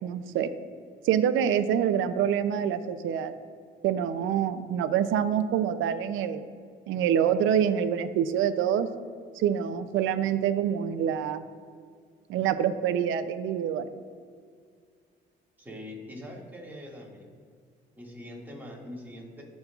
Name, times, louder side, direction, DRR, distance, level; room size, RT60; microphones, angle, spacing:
voice 1, 0.0-0.5 1.0-3.3 3.8-6.4 6.9-8.9 9.3-11.4 12.3-13.9, right 9 dB, 85° right, 10 dB, 0.4 m, -26 dB
voice 2, 15.6-17.3 17.9-19.4, left 1 dB, 10° right, -3 dB, 1.9 m, -43 dB
15.0 x 5.2 x 2.3 m, 2.1 s
cardioid pair, 90°, 20 cm